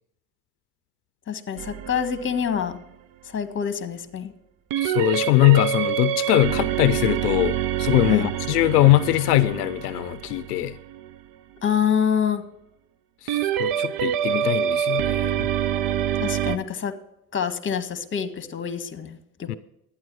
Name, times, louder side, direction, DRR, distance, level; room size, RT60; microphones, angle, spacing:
voice 1, 1.3-2.8 3.2-4.3 8.1-8.3 11.6-12.4 16.2-16.9 17.3-19.6, left 7 dB, 25° left, 1.5 m, -26 dB
sound 1, 1.6-2.8 4.7-11.2 13.3-16.6, right 10 dB, 45° right, 0.8 m, -26 dB
voice 2, 4.8-10.8 13.2-15.5 19.5-19.6, left 16 dB, 80° left, 0.6 m, -21 dB
12.0 x 9.8 x 4.7 m
hypercardioid pair, 80°, 46 cm